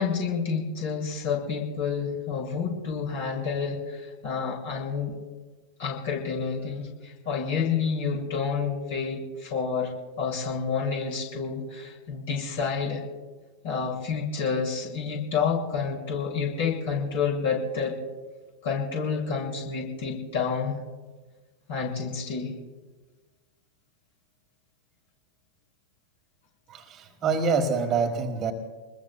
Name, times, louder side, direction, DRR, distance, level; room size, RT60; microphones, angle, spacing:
voice 1, 0.0-5.1 5.8-9.9 10.2-13.0 13.6-17.9 18.6-20.7 21.7-22.5, left 5 dB, 55° left, -2 dB, 6.4 m, -29 dB
voice 2, 26.7-28.5, right 4 dB, 30° right, 6 dB, 1.5 m, -26 dB
28.0 x 21.0 x 2.3 m, 1.3 s
figure-of-eight pair, 90°, 0 cm